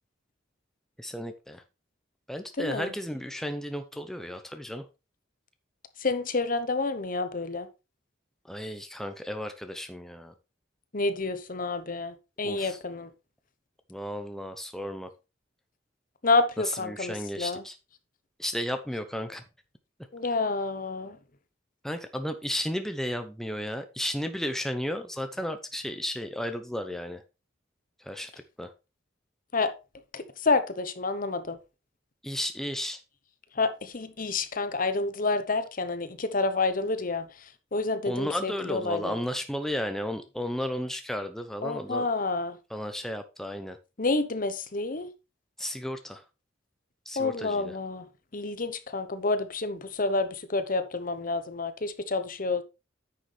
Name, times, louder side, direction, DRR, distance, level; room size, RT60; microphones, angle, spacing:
voice 1, 1.0-1.6 2.3-4.9 8.4-10.3 12.4-12.8 13.9-15.1 16.7-17.8 18.4-19.4 21.8-27.2 28.0-28.3 28.6-28.7 32.2-33.0 38.1-42.1 42.7-43.8 45.6-46.2 47.1-47.8, equal, ahead, 0.7 m, -33 dB
voice 2, 2.6-2.9 6.0-7.7 10.9-13.1 16.2-17.6 20.1-21.2 29.5-29.7 30.1-31.6 33.5-37.3 37.7-39.1 41.6-42.6 44.0-45.1 47.2-48.0 48.3-52.6, left 3 dB, 45° left, 0.9 m, -29 dB
9.6 x 6.5 x 3.4 m
head